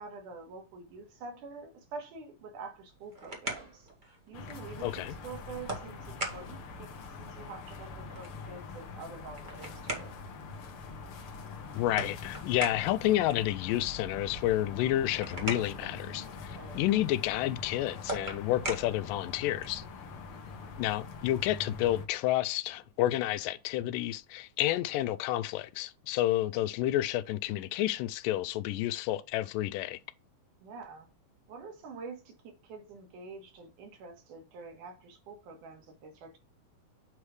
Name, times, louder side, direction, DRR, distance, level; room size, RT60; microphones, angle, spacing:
voice 1, 0.0-3.9 4.3-6.9 7.2-10.1 16.5-16.8 20.1-20.5 30.6-31.1 31.5-36.4, right 4 dB, 75° right, 3.0 m, -46 dB
sound 1, 2.8-19.9, right 2 dB, 45° right, 0.6 m, -43 dB
sound 2, 4.3-22.1, left 4 dB, 60° left, 1.5 m, -44 dB
voice 2, 4.8-5.2 11.8-19.8 20.8-30.0, left 14 dB, 90° left, 2.2 m, -30 dB
8.4 x 3.2 x 4.8 m
omnidirectional pair, 3.8 m